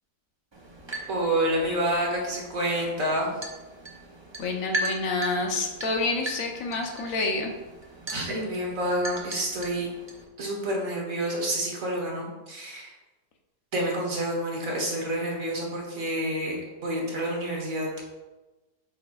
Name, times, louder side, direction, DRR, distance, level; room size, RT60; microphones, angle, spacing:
sound 1, 0.5-10.2, right 2 dB, 35° right, 0.4 m, -38 dB
voice 1, 1.1-3.3 8.1-9.9 10.4-12.9 13.7-16.6 16.8-17.9, right 1 dB, 55° right, -1 dB, 1.6 m, -28 dB
voice 2, 4.4-7.5, left 3 dB, 60° left, 3 dB, 1.2 m, -28 dB
8.3 x 5.3 x 2.4 m, 1.1 s
omnidirectional pair, 1.8 m